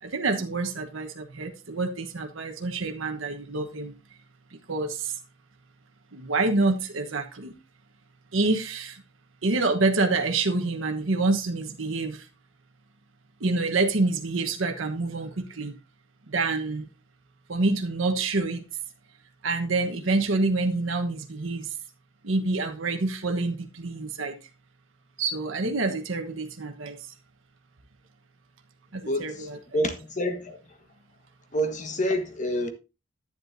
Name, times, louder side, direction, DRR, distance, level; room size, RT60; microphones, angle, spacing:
voice 1, 0.0-3.9 4.5-5.1 6.1-7.5 8.3-9.0 9.4-12.3 13.4-15.7 16.3-16.9 17.5-18.6 19.4-21.7 22.2-24.3 25.2-27.0 28.9-29.6, right 3 dB, 85° right, 1.2 m, -27 dB
voice 2, 29.1-30.8 31.5-32.7, equal, 40° left, 1.5 m, -28 dB
11.0 x 9.7 x 2.7 m
head